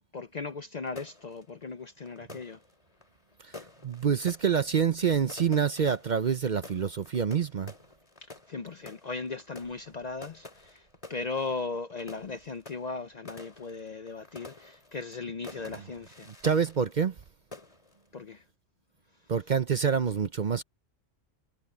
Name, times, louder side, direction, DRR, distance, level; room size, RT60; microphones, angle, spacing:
voice 1, 0.1-2.6 8.5-10.8 11.1-16.3 18.1-18.4, left 4 dB, 45° left, 0.6 m, -37 dB
sound 1, 0.9-17.3 17.5-18.1, left 3 dB, 30° left, 2.7 m, -50 dB
voice 2, 3.4-7.7 15.7-15.8 16.3-17.1 19.3-20.6, right 7 dB, 45° right, 0.7 m, -27 dB
omnidirectional pair, 1.2 m